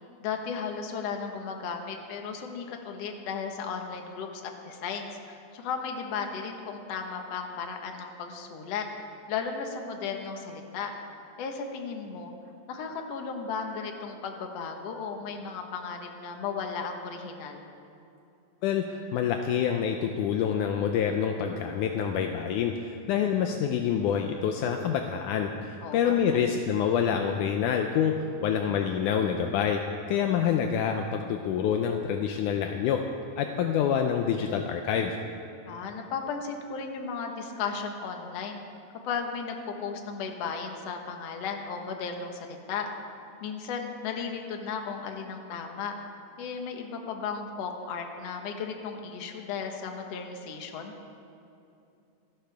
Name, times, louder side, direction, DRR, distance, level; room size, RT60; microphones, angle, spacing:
voice 1, 0.2-8.8 9.3-10.9 11.4-12.3 12.7-17.6 25.8-26.4 35.7-38.6 39.0-46.0 46.4-50.9, left 5 dB, 60° left, 3 dB, 1.9 m, -35 dB
voice 2, 18.6-29.8 30.1-33.0 33.4-35.2, left 8 dB, 80° left, 4 dB, 1.9 m, -27 dB
27.5 x 12.0 x 3.5 m, 2.7 s
omnidirectional pair, 4.1 m